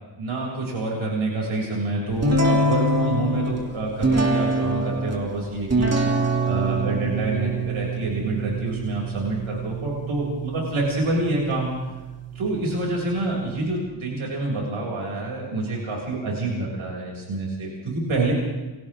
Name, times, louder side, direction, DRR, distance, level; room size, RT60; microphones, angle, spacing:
voice 1, 0.2-11.7 12.3-18.3, right 2 dB, 85° right, -3 dB, 7.3 m, -27 dB
sound 1, 2.2-13.7, right 2 dB, 30° right, 3.0 m, -26 dB
30.0 x 25.5 x 3.8 m, 1.2 s
wide cardioid pair, 150°, 47 cm